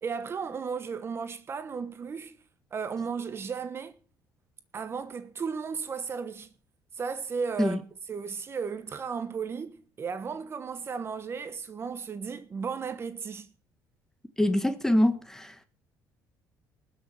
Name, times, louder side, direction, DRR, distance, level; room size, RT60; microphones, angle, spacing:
voice 1, 0.0-2.4 2.7-3.9 4.7-6.5 7.0-7.8 8.1-13.5, right 5 dB, 35° right, 1.2 m, -35 dB
voice 2, 14.4-15.6, left 1 dB, 5° left, 1.5 m, -25 dB
19.5 x 6.6 x 7.0 m
cardioid pair, 115°, 7 cm